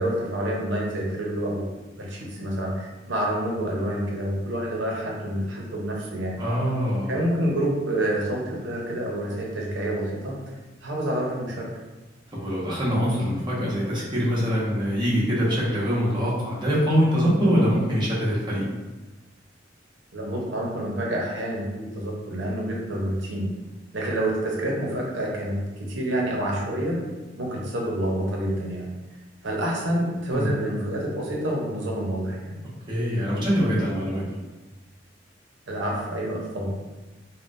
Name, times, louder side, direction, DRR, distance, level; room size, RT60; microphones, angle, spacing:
voice 1, 0.0-6.4 7.1-10.5 10.8-11.7 20.1-23.5 23.9-27.0 27.4-28.9 29.4-32.6 35.7-36.7, right 1 dB, 80° right, -2 dB, 0.7 m, -28 dB
voice 2, 6.4-7.1 12.3-18.6 30.3-30.5 32.9-34.3, equal, 25° right, -8 dB, 0.9 m, -23 dB
3.6 x 2.2 x 2.5 m, 1.2 s
head